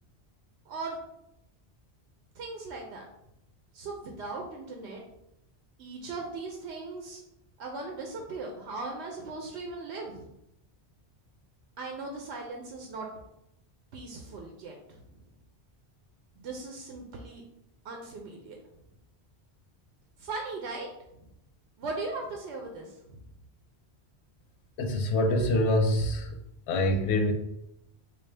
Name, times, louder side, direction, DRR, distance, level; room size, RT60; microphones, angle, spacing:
voice 1, 0.7-1.0 2.3-3.1 3.7-5.0 5.8-7.2 7.6-10.3 11.8-13.1 13.9-15.0 16.4-17.4 17.8-18.6 20.2-20.9 21.2-21.3 21.8-23.2, right 3 dB, 90° right, 1 dB, 0.9 m, -38 dB
voice 2, 24.8-26.4 26.7-27.3, left 1 dB, 90° left, 5 dB, 0.9 m, -25 dB
4.2 x 2.3 x 3.2 m, 0.82 s
omnidirectional pair, 1.1 m